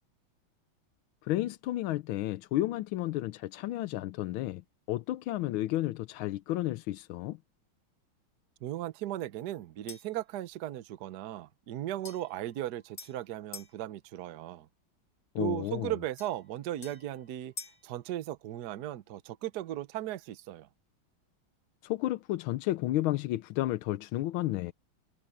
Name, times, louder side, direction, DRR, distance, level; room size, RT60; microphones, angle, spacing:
voice 1, 1.2-4.6 4.9-7.4 15.3-16.0 21.8-24.7, left 15 dB, 80° left, 1.4 m, -32 dB
voice 2, 8.6-14.7 15.4-17.5 17.8-20.7, right 13 dB, 60° right, 1.2 m, -37 dB
sound 1, 9.9-10.2 12.0-13.8 16.2-17.9, left 5 dB, 40° left, 1.4 m, -48 dB
omnidirectional pair, 2.3 m